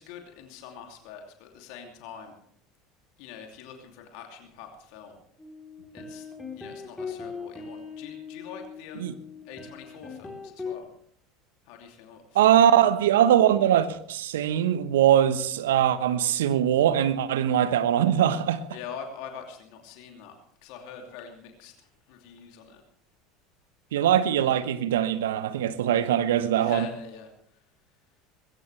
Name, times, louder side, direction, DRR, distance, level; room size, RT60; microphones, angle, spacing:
voice 1, 0.0-2.3 3.2-5.2 5.9-6.3 6.6-9.1 9.4-10.9 11.7-12.9 18.7-22.8 26.5-27.3, left 7 dB, 65° left, 2.7 m, -44 dB
sound 1, 5.4-10.8, left 5 dB, 15° left, 3.9 m, -39 dB
voice 2, 12.3-18.6 23.9-26.9, right 10 dB, 75° right, 1.1 m, -22 dB
20.5 x 17.0 x 3.4 m
hypercardioid pair, 70°, 0 cm